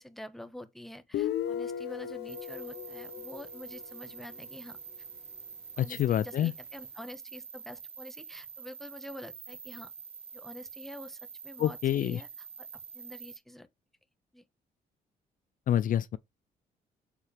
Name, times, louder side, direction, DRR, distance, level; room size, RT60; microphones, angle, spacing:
voice 1, 0.0-4.8 5.8-9.9 10.3-12.7 12.9-13.7 14.3-14.4, left 1 dB, ahead, 1.2 m, -47 dB
Guitar, 1.1-4.7, left 10 dB, 80° left, 0.9 m, -37 dB
sound 1, 2.3-13.4, right 6 dB, 30° right, 0.7 m, -46 dB
voice 2, 5.8-6.5 11.6-12.2 15.7-16.2, left 11 dB, 55° left, 0.4 m, -27 dB
7.2 x 4.3 x 3.3 m
cardioid pair, 85°, 17 cm